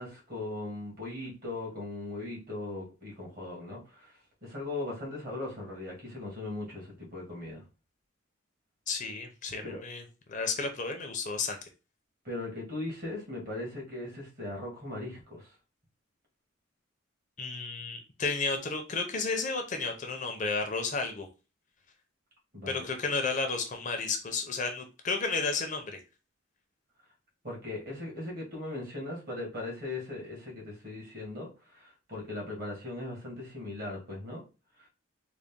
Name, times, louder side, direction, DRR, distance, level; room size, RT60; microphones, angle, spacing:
voice 1, 0.0-4.1 4.4-7.6 9.6-9.8 12.2-15.5 22.5-22.9 27.4-34.4, left 2 dB, 45° right, -2 dB, 1.8 m, -39 dB
voice 2, 8.9-10.0 10.3-11.6 17.4-21.3 22.7-25.9, left 4 dB, 40° left, 5 dB, 0.5 m, -32 dB
3.9 x 2.1 x 3.5 m, 0.31 s
head